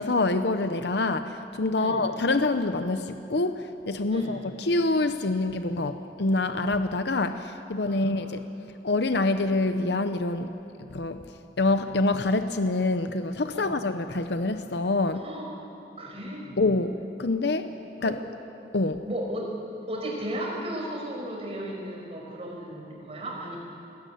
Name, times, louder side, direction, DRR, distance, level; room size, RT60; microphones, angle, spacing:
voice 1, 0.0-8.4 8.8-10.5 10.9-11.2 11.6-15.3 16.6-17.7 18.0-18.2 18.7-19.0, left 2 dB, 70° left, 9 dB, 0.8 m, -26 dB
voice 2, 7.8-8.3 13.5-13.8 15.1-15.5 16.0-16.6 18.0-18.2 19.0-19.6 19.9-23.6, right 1 dB, 35° right, -1 dB, 5.2 m, -35 dB
21.0 x 19.0 x 9.4 m, 2.8 s
head